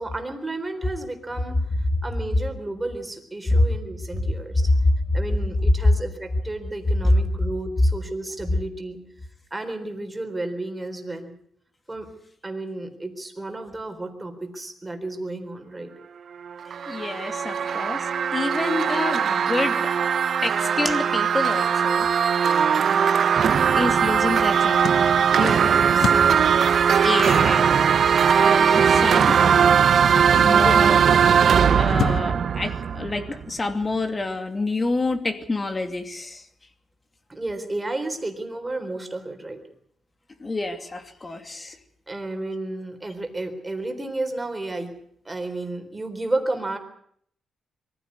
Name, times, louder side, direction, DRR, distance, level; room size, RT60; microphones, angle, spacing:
voice 1, 0.0-1.6 2.0-4.7 5.1-9.0 9.5-11.3 11.9-12.1 12.4-15.9 25.6-25.8 37.3-39.6 42.1-44.9 45.3-46.8, right 2 dB, 15° right, 6 dB, 3.9 m, -32 dB
sound 1, 16.5-33.4, right 7 dB, 60° right, 1.1 m, -19 dB
voice 2, 16.9-19.9 20.4-22.1 23.7-24.8 25.4-26.6 27.0-27.6 28.3-29.6 30.4-31.0 31.7-36.4 40.4-41.8, left 2 dB, 25° left, 7 dB, 2.6 m, -28 dB
sound 2, 24.5-32.2, left 7 dB, 65° left, 1.2 m, -34 dB
23.0 x 15.0 x 9.7 m, 0.66 s
cardioid pair, 120°, 0 cm